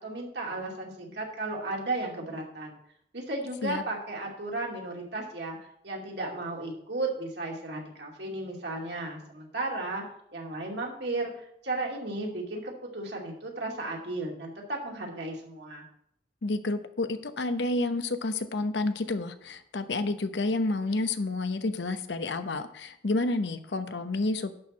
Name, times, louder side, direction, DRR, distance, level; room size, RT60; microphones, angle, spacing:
voice 1, 0.0-2.7 3.1-5.6 5.8-10.0 10.3-15.8, right 2 dB, 70° right, -1 dB, 2.6 m, -34 dB
voice 2, 16.4-24.5, left 2 dB, 80° left, 10 dB, 0.9 m, -30 dB
11.0 x 4.6 x 7.2 m, 0.71 s
head